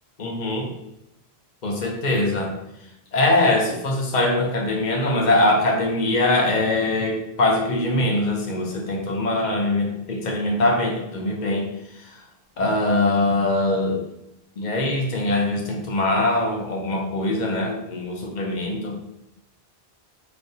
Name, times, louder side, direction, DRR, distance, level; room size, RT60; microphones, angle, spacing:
voice 1, 0.2-0.7 1.6-2.5 3.1-11.7 11.9-12.2 12.6-14.0 14.6-19.0, left 2 dB, 50° left, 0 dB, 0.9 m, -22 dB
4.5 x 3.3 x 2.7 m, 0.83 s
omnidirectional pair, 1.0 m